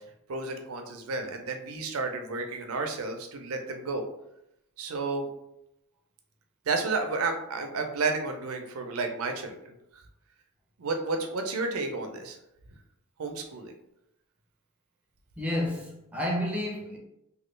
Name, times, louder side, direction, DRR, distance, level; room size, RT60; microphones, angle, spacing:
voice 1, 0.3-4.0 4.8-5.3 6.7-10.0 10.8-12.4 13.2-13.7, right 3 dB, 70° right, 0.5 m, -31 dB
voice 2, 15.4-17.0, left 1 dB, 5° right, 0.6 m, -30 dB
3.0 x 2.3 x 3.1 m
head